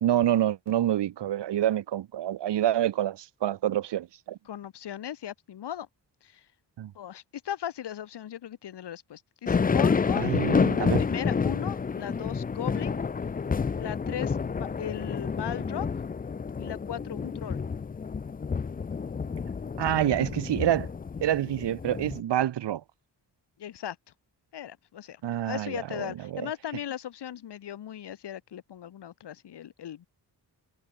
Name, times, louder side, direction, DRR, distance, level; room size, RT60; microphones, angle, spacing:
voice 1, 0.0-4.4 6.8-6.9 10.2-11.0 19.8-20.9 21.2-22.8 25.2-26.5, right 12 dB, 85° right, 0.9 m, -27 dB
voice 2, 4.4-5.9 6.2-6.4 6.9-10.3 10.8-13.0 13.8-15.9 16.6-17.6 23.6-24.0 24.5-30.1, left 10 dB, 75° left, 1.3 m, -38 dB
sound 1, 9.5-22.2, left 5 dB, 20° left, 0.4 m, -29 dB
wide cardioid pair, 170°, 41 cm